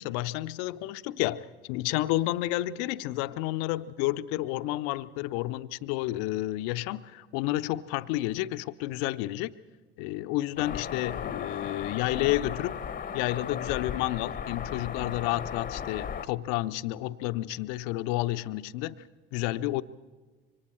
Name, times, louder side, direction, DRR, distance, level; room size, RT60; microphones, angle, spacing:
voice 1, 0.0-9.5 10.0-12.8 13.1-19.0 19.3-19.8, left 16 dB, 55° left, 0.7 m, -30 dB
sound 1, 10.6-16.3, left 7 dB, 30° left, 1.0 m, -36 dB
27.0 x 24.5 x 4.3 m
figure-of-eight pair, 55°, 30 cm